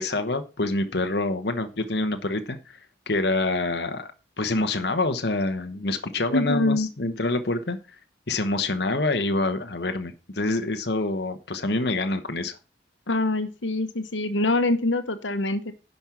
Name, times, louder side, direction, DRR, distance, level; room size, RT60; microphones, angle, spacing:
voice 1, 0.0-2.8 3.1-4.1 4.4-7.8 8.3-12.6, left 2 dB, 60° left, 7 dB, 1.1 m, -26 dB
voice 2, 6.3-6.9 13.1-15.7, left 2 dB, 90° left, 10 dB, 1.2 m, -24 dB
10.5 x 5.5 x 5.9 m, 0.31 s
head